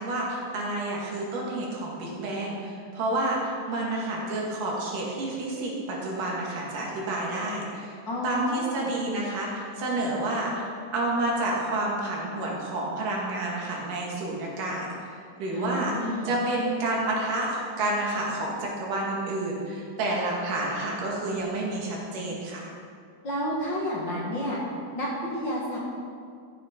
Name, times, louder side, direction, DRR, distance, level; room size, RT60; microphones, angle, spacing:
voice 1, 0.0-15.1 15.4-15.9 16.3-22.7, right 2 dB, 85° right, -3 dB, 3.6 m, -29 dB
voice 2, 8.1-8.9 15.5-16.4 23.2-24.6 24.9-25.8, equal, 40° left, -5 dB, 2.0 m, -30 dB
14.0 x 6.9 x 5.2 m, 2.3 s
omnidirectional pair, 3.6 m